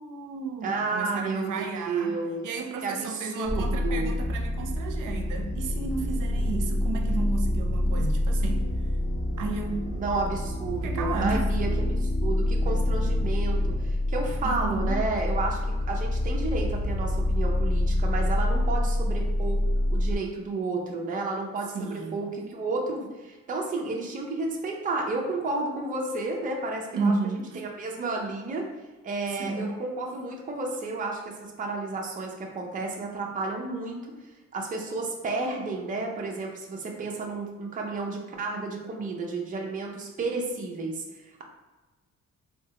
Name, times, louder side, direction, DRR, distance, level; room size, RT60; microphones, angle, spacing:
voice 1, 0.0-2.2 2.4-8.7 9.4-9.9 10.8-11.5 14.4-15.0 21.7-22.3 26.9-27.7 29.4-29.8, right 4 dB, 85° right, 3 dB, 0.5 m, -32 dB
voice 2, 0.6-2.5 2.8-4.2 10.0-15.6 15.9-19.6 19.9-27.1 27.6-28.7 29.0-34.0 34.5-41.4, right 3 dB, 25° right, 0 dB, 0.4 m, -32 dB
sound 1, 3.4-20.2, left 1 dB, 35° left, 0.6 m, -26 dB
3.7 x 2.1 x 2.8 m, 1.2 s
wide cardioid pair, 170°, 31 cm